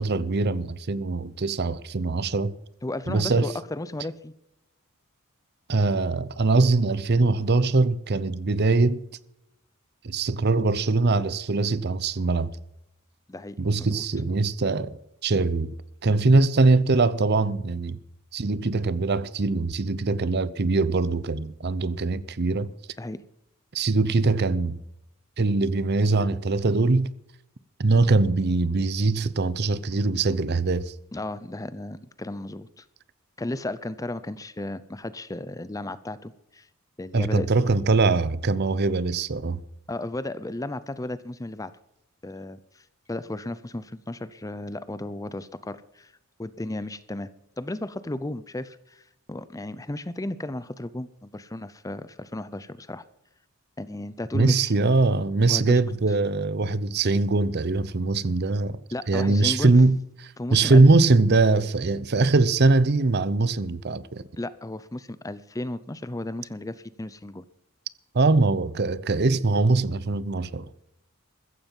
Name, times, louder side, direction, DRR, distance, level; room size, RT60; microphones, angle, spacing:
voice 1, 0.0-2.5 3.1-3.5 5.7-9.0 10.0-12.5 13.6-15.7 16.0-18.0 18.3-22.7 23.7-24.8 25.4-27.1 27.8-30.9 37.1-39.6 54.3-58.8 59.1-64.2 68.1-70.7, right 3 dB, 50° right, 0.7 m, -22 dB
voice 2, 2.8-4.3 13.3-14.0 23.0-23.2 31.1-32.9 33.4-36.7 37.0-37.5 39.9-41.7 42.2-46.1 46.4-47.3 47.6-49.0 49.3-53.0 53.8-54.7 55.5-55.8 58.9-59.7 60.4-60.9 64.4-67.4, left 1 dB, 15° left, 0.6 m, -34 dB
15.0 x 14.5 x 5.4 m
head